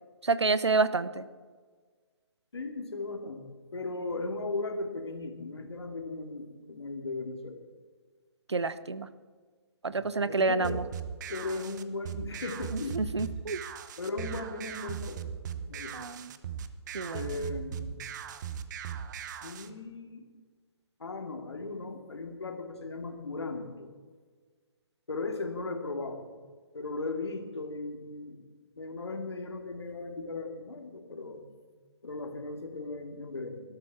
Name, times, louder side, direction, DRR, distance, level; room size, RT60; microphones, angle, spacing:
voice 1, 0.2-1.3 8.5-9.1 9.8-10.8 12.7-13.6 15.9-16.3 16.9-17.3, right 3 dB, 85° right, 15 dB, 0.9 m, -29 dB
voice 2, 2.5-3.4 3.7-7.6 9.9-10.8 11.3-13.0 14.0-15.2 15.7-16.1 17.1-18.0 19.4-20.2 21.0-23.9 25.1-26.2 26.7-28.5 28.8-31.4 32.0-33.6, left 3 dB, 75° left, 4 dB, 2.5 m, -37 dB
sound 1, 10.6-19.7, right 8 dB, 45° right, 1.0 m, -39 dB
19.0 x 12.5 x 4.8 m, 1.5 s
figure-of-eight pair, 135°, 14 cm